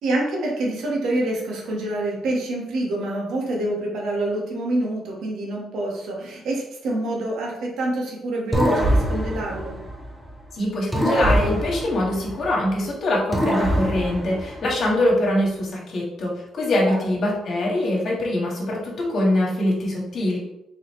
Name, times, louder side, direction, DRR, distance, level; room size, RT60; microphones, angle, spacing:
voice 1, 0.0-9.8 16.8-17.1, right 1 dB, 80° right, -2 dB, 1.3 m, -26 dB
sound 1, 8.5-10.4 10.9-12.8 13.3-15.0, equal, 5° right, 1.0 m, -24 dB
voice 2, 10.5-20.4, left 1 dB, 55° left, -2 dB, 1.7 m, -23 dB
4.0 x 4.0 x 3.2 m, 0.85 s
cardioid pair, 90°, 0 cm